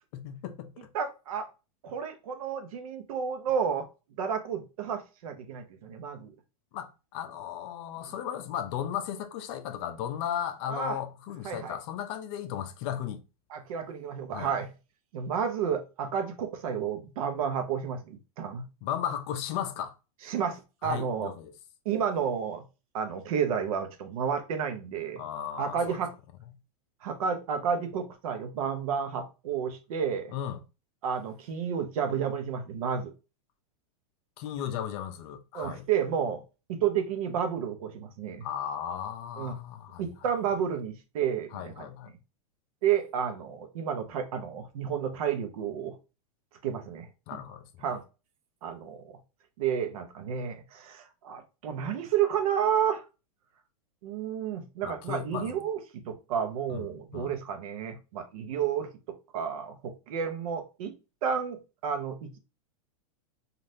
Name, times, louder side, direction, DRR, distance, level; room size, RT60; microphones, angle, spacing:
voice 1, 0.1-0.7 6.7-13.2 14.3-14.5 18.8-19.9 20.8-21.5 25.2-26.0 30.3-30.6 34.4-35.8 38.4-40.1 41.5-42.1 47.3-47.9 54.8-55.5 56.7-57.4, left 10 dB, 45° left, 0.6 m, -35 dB
voice 2, 0.9-1.5 1.8-3.9 4.2-6.3 10.7-11.0 11.4-11.8 13.5-14.7 15.1-18.6 20.2-21.3 21.8-22.6 22.9-25.2 25.6-26.1 27.0-30.3 31.0-33.1 35.5-36.4 36.7-38.4 39.4-39.5 40.0-41.9 42.8-45.9 46.6-47.1 47.8-48.0 48.6-49.2 49.6-53.0 54.0-58.9 59.3-60.9 61.2-62.4, right 7 dB, 65° right, 0.8 m, -31 dB
3.2 x 2.5 x 2.7 m
supercardioid pair, 140°, 19 cm